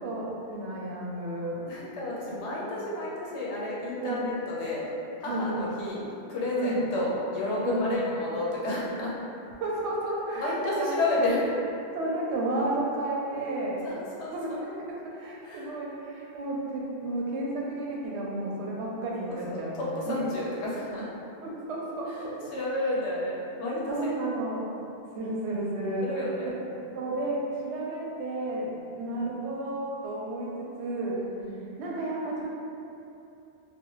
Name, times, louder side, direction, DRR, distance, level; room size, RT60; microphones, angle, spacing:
voice 1, 0.0-1.6 4.0-4.3 5.3-5.7 6.6-6.8 7.6-8.0 9.6-10.9 11.1-11.5 11.9-13.8 14.3-20.2 21.4-22.4 23.9-24.7 25.1-26.1 26.9-31.2 31.8-32.5, right 2 dB, 85° right, -3 dB, 0.9 m, -32 dB
voice 2, 1.7-4.9 5.2-9.1 10.4-11.5 13.8-14.6 15.4-15.7 19.3-21.1 22.2-24.1 26.0-26.6 29.0-29.2 31.4-31.7, left 2 dB, 90° left, -6 dB, 0.9 m, -31 dB
2.4 x 2.2 x 2.9 m, 2.8 s
omnidirectional pair, 1.1 m